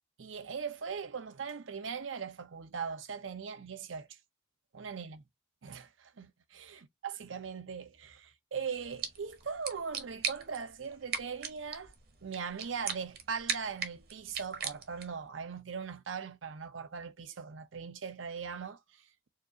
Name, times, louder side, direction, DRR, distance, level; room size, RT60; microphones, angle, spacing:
voice 1, 0.2-4.2 4.7-5.2 5.6-11.9 12.2-19.3, right 6 dB, 80° right, 0.6 m, -40 dB
sound 1, 8.7-15.2, right 7 dB, 50° right, 0.9 m, -40 dB
4.6 x 2.4 x 2.8 m
head